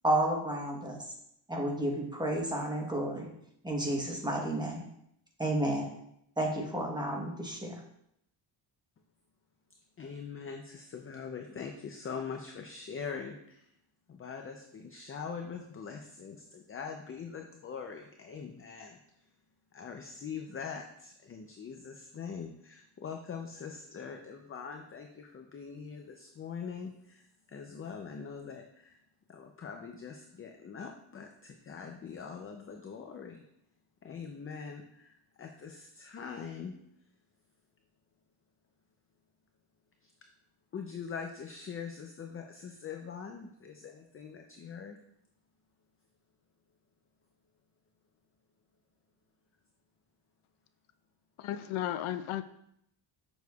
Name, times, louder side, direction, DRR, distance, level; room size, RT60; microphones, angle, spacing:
voice 1, 0.0-1.1 1.5-3.3 3.6-4.9 5.4-5.9 6.4-7.8, right 1 dB, 10° right, 0 dB, 1.1 m, -31 dB
voice 2, 10.0-13.7 14.1-19.0 19.7-29.0 29.3-33.4 34.0-36.7 40.0-40.1 40.7-45.0, left 6 dB, 30° left, 4 dB, 0.5 m, -43 dB
voice 3, 51.4-52.4, left 12 dB, 80° left, 10 dB, 0.6 m, -34 dB
7.0 x 6.1 x 2.3 m, 0.75 s
cardioid pair, 125°, 48 cm